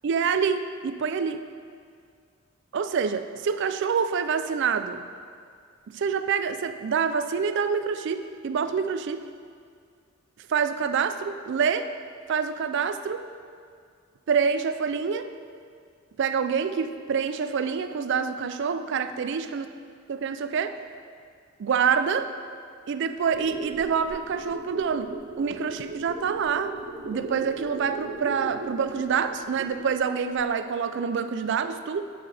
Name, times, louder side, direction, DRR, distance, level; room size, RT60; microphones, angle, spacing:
voice 1, 0.0-1.5 2.7-5.0 5.9-9.2 10.5-11.9 12.3-13.2 14.3-15.3 16.2-19.7 20.1-20.8 21.6-22.3 22.9-26.8 27.0-32.0, right 6 dB, 55° right, 10 dB, 0.3 m, -26 dB
sound 1, 23.2-30.0 30.3-30.4, right 3 dB, 85° right, 1.1 m, -38 dB
10.0 x 5.5 x 3.3 m, 2.2 s
head